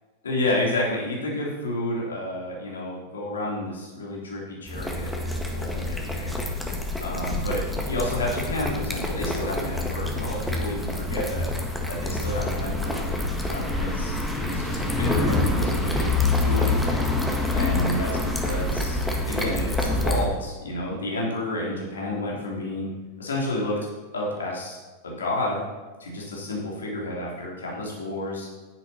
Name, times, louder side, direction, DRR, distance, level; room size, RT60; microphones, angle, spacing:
voice 1, 0.2-6.4 7.0-7.6 7.9-11.4 11.9-13.0 13.5-16.1 16.4-17.0 17.5-18.1 18.4-19.0 19.3-22.9 23.2-23.7 24.1-24.8 25.0-25.6 26.0-28.5, left 1 dB, 70° left, -3 dB, 3.4 m, -30 dB
sound 1, 4.7-20.3, left 2 dB, 5° left, 1.7 m, -26 dB
11.0 x 9.8 x 4.4 m, 1.3 s
figure-of-eight pair, 90°, 0 cm